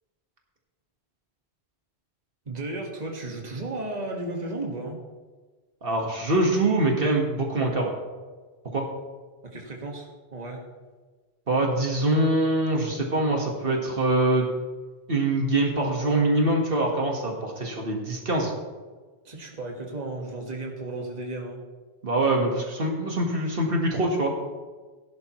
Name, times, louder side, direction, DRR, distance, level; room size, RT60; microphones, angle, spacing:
voice 1, 2.5-5.0 9.4-10.7 19.2-21.6, right 2 dB, 40° right, 0 dB, 1.8 m, -34 dB
voice 2, 5.8-7.9 8.7-8.9 11.5-14.6 15.1-18.5 22.0-24.3, right 2 dB, 60° right, 0 dB, 1.8 m, -24 dB
17.0 x 11.0 x 3.1 m, 1.4 s
omnidirectional pair, 1.1 m